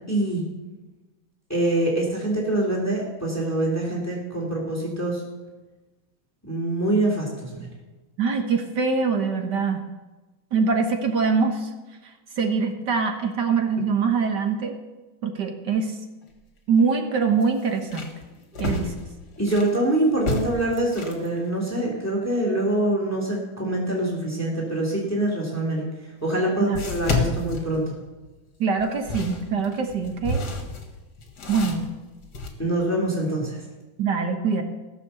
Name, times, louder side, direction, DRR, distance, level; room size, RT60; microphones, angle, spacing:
voice 1, 0.1-0.4 1.5-5.2 6.4-7.7 19.4-25.8 26.2-27.9 32.6-33.6, right 1 dB, 10° left, -2 dB, 2.8 m, -25 dB
voice 2, 8.2-9.9 10.5-11.7 12.4-14.8 15.2-16.0 16.7-18.1 18.6-18.9 26.6-26.8 27.3-27.4 28.6-30.5 31.5-31.9 34.0-34.6, right 5 dB, 65° right, 5 dB, 1.7 m, -23 dB
sound 1, 16.2-16.3 16.7-16.8 17.4-19.8 20.2-21.3 25.5-25.6 26.7-28.3 28.8-32.5, left 3 dB, 60° left, 2.2 m, -30 dB
16.0 x 6.9 x 6.8 m, 1.2 s
omnidirectional pair, 2.1 m